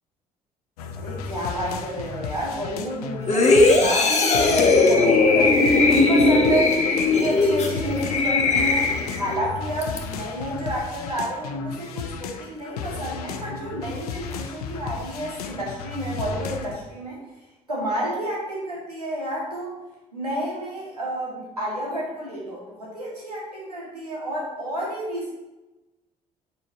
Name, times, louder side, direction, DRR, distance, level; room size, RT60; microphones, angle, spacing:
sound 1, 0.8-16.8, left 5 dB, 75° left, 0.6 m, -34 dB
voice 1, 1.0-6.8 7.2-8.9 9.1-17.2 17.7-19.7 20.1-25.3, right 1 dB, 90° right, -5 dB, 1.7 m, -30 dB
sound 2, 3.3-9.4 9.8-10.0, left 3 dB, 35° left, 1.4 m, -18 dB
8.8 x 4.5 x 4.5 m, 1.1 s
figure-of-eight pair, 45°, 19 cm